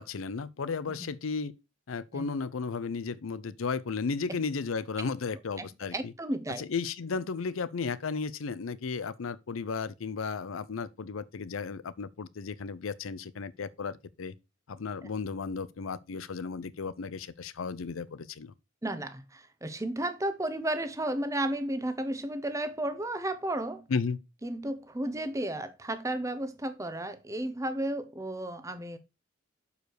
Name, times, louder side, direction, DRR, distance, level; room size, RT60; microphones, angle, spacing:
voice 1, 0.0-1.5 1.9-6.1 6.6-14.4 14.7-18.5 23.9-24.2, left 5 dB, 90° left, 0.6 m, -34 dB
voice 2, 5.9-6.6 18.8-23.9 24.4-29.0, right 1 dB, 15° right, 0.8 m, -33 dB
6.7 x 4.8 x 4.6 m
head